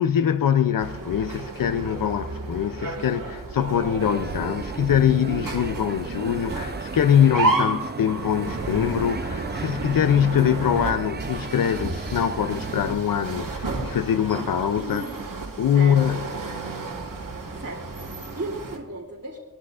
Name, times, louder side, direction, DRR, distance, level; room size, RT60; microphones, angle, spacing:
voice 1, 0.0-15.0 15.6-16.2, left 9 dB, 90° left, 10 dB, 0.5 m, -23 dB
sound 1, 0.8-18.8, right 3 dB, 80° right, 1.9 m, -32 dB
sound 2, 4.0-13.0, right 4 dB, 30° right, 0.6 m, -35 dB
voice 2, 5.5-6.0 14.8-15.2 15.7-16.3 17.5-19.4, right 2 dB, 45° right, -3 dB, 2.9 m, -36 dB
20.0 x 12.0 x 2.4 m, 1.1 s
wide cardioid pair, 50°, 33 cm